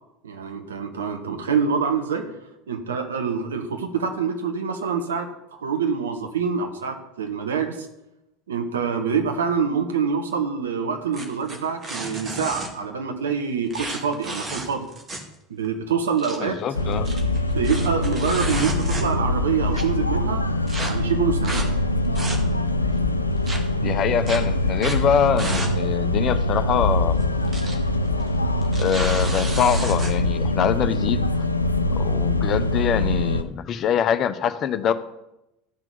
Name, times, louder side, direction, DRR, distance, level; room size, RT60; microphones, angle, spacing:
voice 1, 0.2-2.3 2.7-7.9 8.5-14.8 15.5-16.6 17.1-17.2 17.5-20.5 20.8-21.6, right 6 dB, 70° right, 6 dB, 1.3 m, -26 dB
sound 1, 11.1-12.7 13.7-15.3 15.6-15.7 16.0-16.4 16.9-19.3 19.7-19.8 20.7-20.9 21.4-21.7 22.0-22.7 23.5-23.6 24.3-24.4 24.8-25.0 25.4-25.7 26.0-26.1 27.2-27.7 28.0-28.2 28.6-30.1, right 2 dB, 25° right, 2.2 m, -32 dB
voice 2, 16.4-17.1 23.8-27.2 28.8-31.3 31.9-34.9, left 8 dB, 40° left, 11 dB, 0.8 m, -24 dB
sound 2, 16.7-33.4, left 1 dB, 85° left, 0.5 m, -23 dB
13.0 x 6.0 x 6.9 m, 0.89 s
figure-of-eight pair, 70°, 0 cm